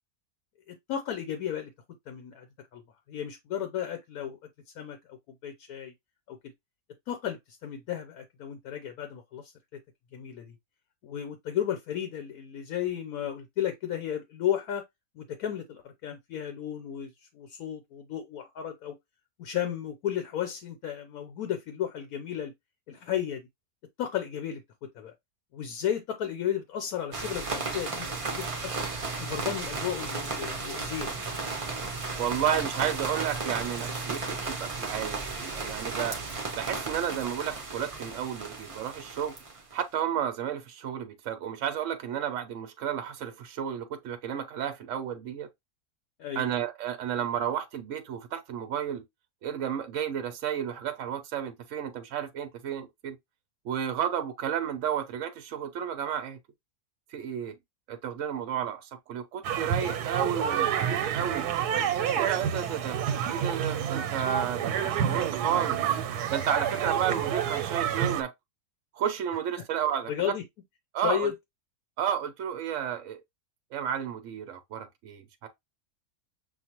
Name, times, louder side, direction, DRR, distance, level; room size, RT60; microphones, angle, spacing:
voice 1, 0.7-1.7 2.1-2.5 2.7-2.8 3.1-4.4 4.7-5.2 5.4-5.9 6.3-6.5 7.1-9.8 10.1-10.6 11.0-14.8 15.1-19.0 19.4-22.5 22.9-23.5 24.0-25.1 25.5-28.7 29.2-31.1 46.2-46.5 62.5-62.7 66.7-67.0 69.6-69.7 70.1-70.4 71.0-71.4, left 10 dB, 75° left, 1.1 m, -34 dB
sound 1, 27.1-39.7, right 4 dB, 35° right, 0.6 m, -34 dB
voice 2, 32.2-36.2 36.6-39.3 39.7-45.5 46.4-49.0 49.4-53.2 53.6-56.4 57.1-57.6 57.9-61.5 62.1-63.0 63.3-66.0 66.3-68.3 68.9-70.3 70.9-71.3 72.0-73.2 73.7-75.5, right 9 dB, 65° right, 0.9 m, -32 dB
sound 2, 59.4-68.2, right 9 dB, 90° right, 1.2 m, -29 dB
6.3 x 2.3 x 2.9 m
omnidirectional pair, 1.6 m